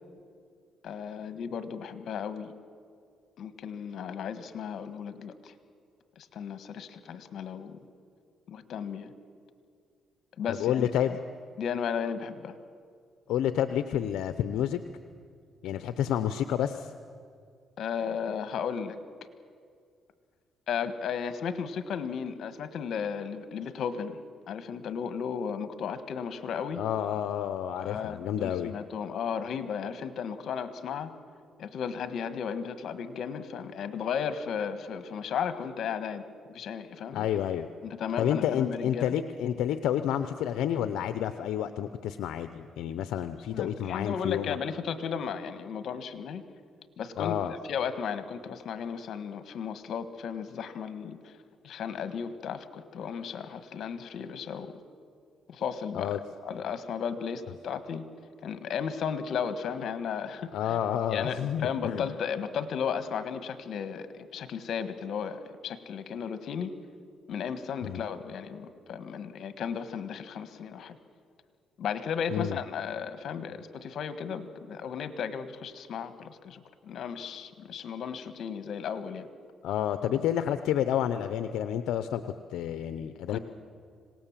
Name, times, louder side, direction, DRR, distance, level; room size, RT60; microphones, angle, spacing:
voice 1, 0.8-2.5 3.4-5.5 6.2-7.8 8.5-9.1 10.4-10.9 11.6-12.6 17.8-19.0 20.7-24.2 24.5-26.8 27.8-31.1 31.6-36.2 36.5-37.3 37.8-39.1 43.5-46.4 47.0-47.4 47.7-51.3 51.6-54.8 55.5-56.2 56.4-58.0 58.4-60.8 61.1-66.7 67.3-71.0 71.8-79.3 83.3-83.4, left 7 dB, 65° left, 11 dB, 1.5 m, -35 dB
voice 2, 10.5-11.2 13.3-14.8 15.6-16.9 26.7-28.7 37.1-37.7 38.2-44.6 47.2-47.5 55.9-56.2 60.5-62.1 67.8-68.0 72.3-72.6 79.6-83.4, left 10 dB, 85° left, 10 dB, 0.7 m, -29 dB
26.0 x 18.0 x 7.4 m, 2.2 s
cardioid pair, 90°, 0 cm